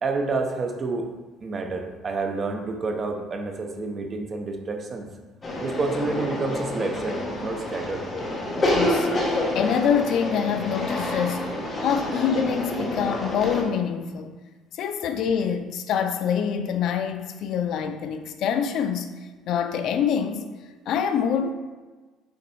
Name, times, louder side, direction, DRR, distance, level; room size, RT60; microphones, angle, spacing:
voice 1, 0.0-1.1 1.4-5.1 5.6-8.1, right 3 dB, 25° right, 0.7 m, -29 dB
sound 1, 5.4-13.6, left 1 dB, 20° left, 1.1 m, -28 dB
voice 2, 8.7-14.3 14.7-19.1 19.5-20.5 20.9-21.5, left 7 dB, 50° left, 0.4 m, -25 dB
7.0 x 3.9 x 4.7 m
cardioid pair, 165°, 0 cm